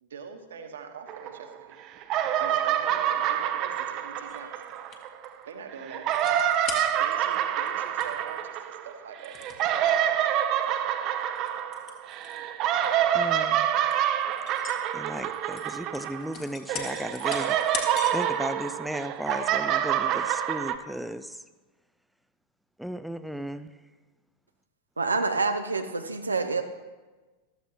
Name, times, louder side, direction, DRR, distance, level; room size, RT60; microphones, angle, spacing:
voice 1, 0.0-1.8 2.4-4.5 5.4-6.1 7.0-9.3, right 5 dB, 65° right, 6 dB, 1.4 m, -43 dB
sound 1, 1.1-1.7 2.0-5.3 5.8-16.4 16.7-20.8, right 10 dB, 40° right, 0.7 m, -27 dB
sound 2, 4.3-5.2 6.1-7.3 7.7-7.8 8.0-8.3 9.2-9.9 10.5-10.7 11.2-12.4 12.7-13.0 13.5-13.6 13.9-14.8 15.2-18.3 18.7-18.8, left 6 dB, 35° left, 1.7 m, -40 dB
voice 2, 13.1-13.7 14.9-17.6 18.1-21.4 22.8-23.7, equal, ahead, 11 dB, 0.4 m, -35 dB
voice 3, 25.0-26.6, right 3 dB, 80° right, 6 dB, 0.6 m, -27 dB
14.0 x 13.5 x 3.0 m, 1.3 s
figure-of-eight pair, 90°, 0 cm